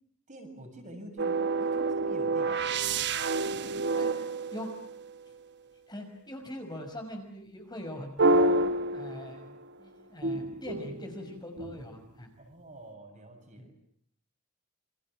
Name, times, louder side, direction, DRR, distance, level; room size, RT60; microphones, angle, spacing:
voice 1, 0.3-2.7 12.4-13.9, right 1 dB, 35° right, 4 dB, 7.5 m, -47 dB
sound 1, 1.2-5.3 8.2-9.7 10.2-12.0, right 2 dB, 50° right, 1.1 m, -29 dB
voice 2, 5.9-9.4 9.8-12.3 13.6-13.7, left 1 dB, 20° left, 4 dB, 5.7 m, -41 dB
29.0 x 27.0 x 7.6 m, 0.64 s
head